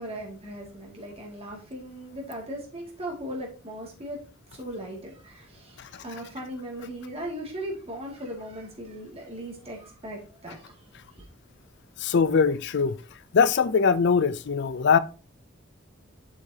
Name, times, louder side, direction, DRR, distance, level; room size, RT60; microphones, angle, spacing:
voice 1, 0.0-4.2 4.5-10.8 11.2-11.3, right 1 dB, 30° right, 2.4 m, -38 dB
voice 2, 12.0-13.0 13.3-15.0, left 5 dB, 60° left, 0.5 m, -22 dB
7.5 x 6.4 x 2.8 m
head